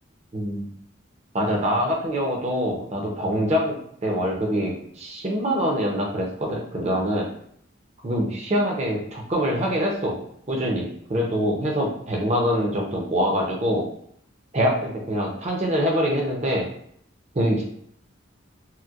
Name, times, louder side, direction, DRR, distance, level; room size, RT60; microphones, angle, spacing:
voice 1, 0.3-0.7 1.3-7.3 8.0-10.2 10.5-13.8 14.5-16.7 17.3-17.6, equal, 35° right, -1 dB, 0.7 m, -24 dB
4.3 x 2.2 x 2.4 m, 0.67 s
head